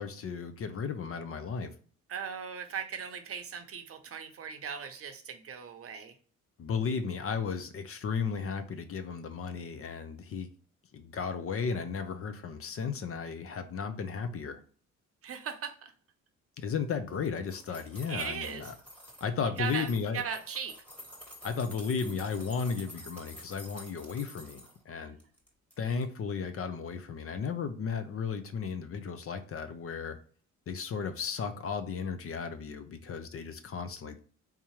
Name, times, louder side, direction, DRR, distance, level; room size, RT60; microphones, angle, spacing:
voice 1, 0.0-1.7 6.6-10.5 10.9-14.6 16.6-18.7 19.2-20.2 21.4-24.6 24.9-25.2 25.8-30.2 30.7-34.2, left 5 dB, 50° left, 0.6 m, -34 dB
voice 2, 2.1-6.1 15.2-15.9 18.1-18.7 19.6-20.8, right 7 dB, 50° right, 0.7 m, -38 dB
sound 1, 17.1-19.3 19.6-24.8 25.2-25.8 26.0-26.1, equal, 5° left, 1.5 m, -49 dB
3.6 x 2.8 x 2.9 m
cardioid pair, 90°, 30 cm